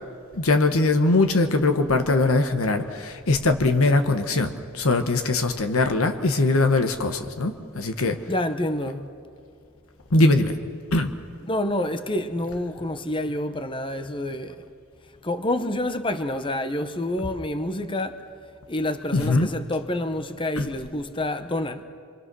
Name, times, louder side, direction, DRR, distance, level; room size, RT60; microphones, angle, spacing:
voice 1, 0.3-8.2 10.1-10.5 10.9-11.1 19.1-19.5 20.6-20.7, left 2 dB, 85° left, 1.2 m, -21 dB
voice 2, 8.3-9.1 11.5-14.6 15.2-18.3 18.7-21.8, left 1 dB, 25° left, 0.9 m, -28 dB
26.0 x 24.0 x 6.2 m
head